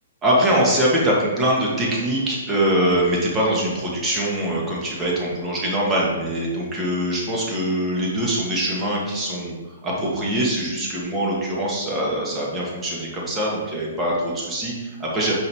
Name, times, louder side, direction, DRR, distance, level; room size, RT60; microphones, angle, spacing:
voice 1, 0.2-9.6 9.8-15.3, right 1 dB, 20° right, -4 dB, 1.7 m, -23 dB
5.5 x 5.1 x 3.6 m, 1.2 s
hypercardioid pair, 130°, 0 cm